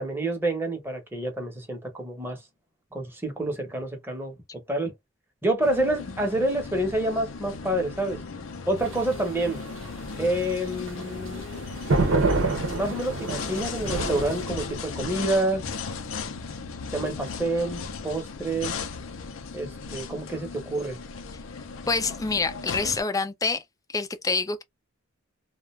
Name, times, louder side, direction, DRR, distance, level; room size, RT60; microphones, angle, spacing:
voice 1, 0.0-2.4 2.9-4.9 5.4-8.2 8.7-9.6 10.2-11.4 12.7-15.6 16.9-18.7 19.5-21.0, right 1 dB, 10° right, 0.9 m, -28 dB
sound 1, 5.6-23.0, left 4 dB, 75° left, 0.5 m, -36 dB
sound 2, 8.8-14.4, right 3 dB, 75° right, 0.8 m, -28 dB
voice 2, 21.9-23.6 23.9-24.6, left 4 dB, 15° left, 0.4 m, -26 dB
2.4 x 2.2 x 3.1 m
head